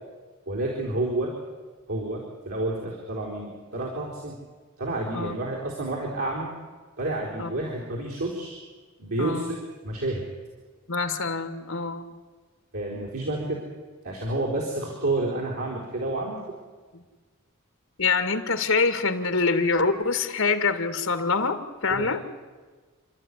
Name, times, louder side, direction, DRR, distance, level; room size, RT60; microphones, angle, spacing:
voice 1, 0.5-1.3 1.9-4.4 4.8-6.5 7.0-8.6 9.0-9.6 9.8-10.2 12.7-13.6 14.0-16.4 21.9-22.0, right 2 dB, 80° right, -3 dB, 4.4 m, -29 dB
voice 2, 9.2-9.5 10.9-12.1 16.9-17.0 18.0-22.2, left 4 dB, 65° left, 9 dB, 2.1 m, -25 dB
29.0 x 12.5 x 9.9 m, 1.4 s
head